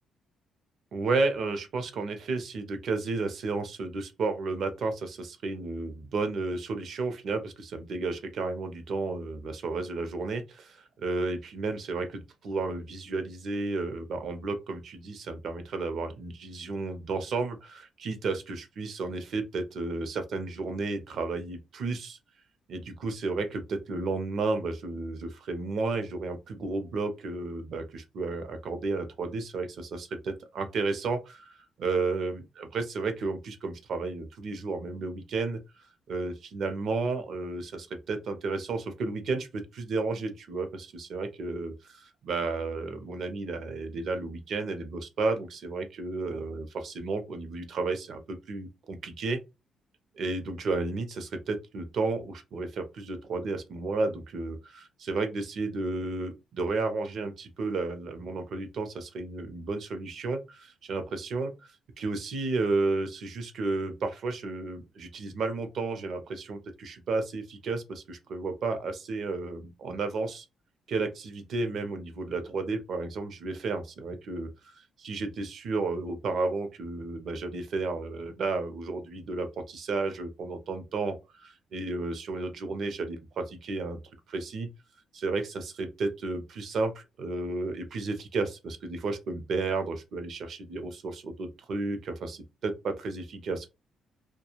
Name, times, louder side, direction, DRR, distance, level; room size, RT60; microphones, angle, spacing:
voice 1, 0.9-22.2 22.7-35.6 36.1-49.4 50.2-61.7 62.0-70.4 70.9-84.0 84.3-84.7 85.1-93.7, right 3 dB, 65° right, 0.6 m, -32 dB
2.3 x 2.2 x 2.9 m
cardioid pair, 90°, 0 cm